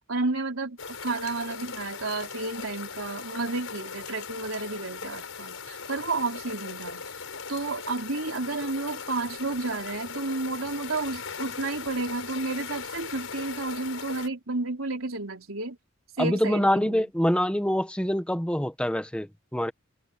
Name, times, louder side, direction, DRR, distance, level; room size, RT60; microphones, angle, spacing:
voice 1, 0.1-7.0 7.5-15.8 16.2-17.0, right 3 dB, 90° right, 3.7 m, -31 dB
sound 1, 0.8-14.3, left 5 dB, 80° left, 5.2 m, -39 dB
voice 2, 16.2-19.7, equal, 5° left, 1.2 m, -25 dB
head